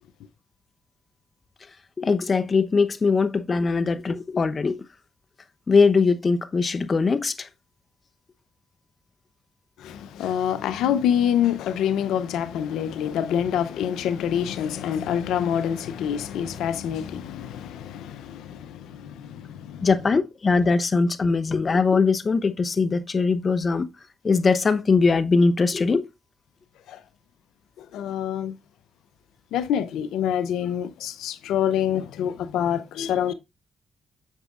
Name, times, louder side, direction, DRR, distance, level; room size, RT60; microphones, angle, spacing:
voice 1, 2.0-4.8 5.7-7.3 19.8-23.9 24.2-26.0, left 4 dB, 45° left, 0.9 m, -21 dB
voice 2, 9.8-19.9 27.9-28.5 29.5-33.3, left 9 dB, 85° left, 0.6 m, -26 dB
8.2 x 6.3 x 2.5 m
supercardioid pair, 55°, 0 cm